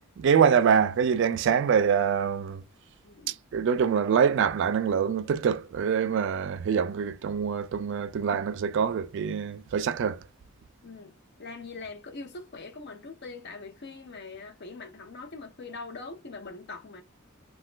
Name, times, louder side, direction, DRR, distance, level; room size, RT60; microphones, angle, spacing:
voice 1, 0.2-2.6 3.3-10.2, right 7 dB, 55° right, 0.3 m, -25 dB
voice 2, 3.0-3.4 10.8-17.0, left 3 dB, 50° left, 0.7 m, -42 dB
3.0 x 2.2 x 3.1 m
head